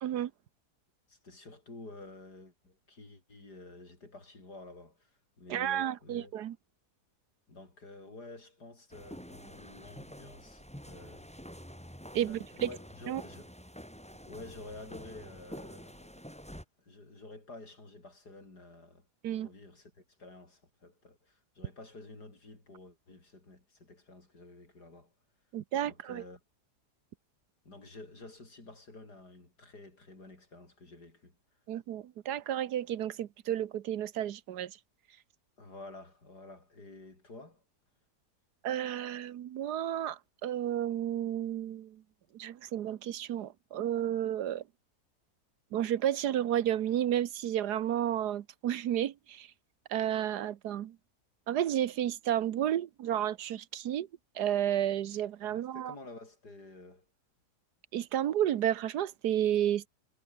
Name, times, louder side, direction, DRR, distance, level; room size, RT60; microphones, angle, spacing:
voice 1, 0.0-0.3 5.5-6.6 12.1-12.7 13.1-13.2 19.2-19.5 25.5-26.2 31.7-34.8 38.6-42.0 42.3-44.6 45.7-49.5 49.9-51.0 51.5-54.1 54.4-55.9 57.9-59.9, right 11 dB, 80° right, 1.4 m, -32 dB
voice 2, 1.1-6.3 7.5-11.3 12.2-13.5 14.2-16.5 16.8-19.1 19.3-25.1 25.9-26.4 27.6-31.4 35.6-37.6 55.4-57.1, left 2 dB, 75° left, 6.5 m, -50 dB
sound 1, 8.9-16.7, equal, 5° left, 6.4 m, -48 dB
omnidirectional pair, 1.7 m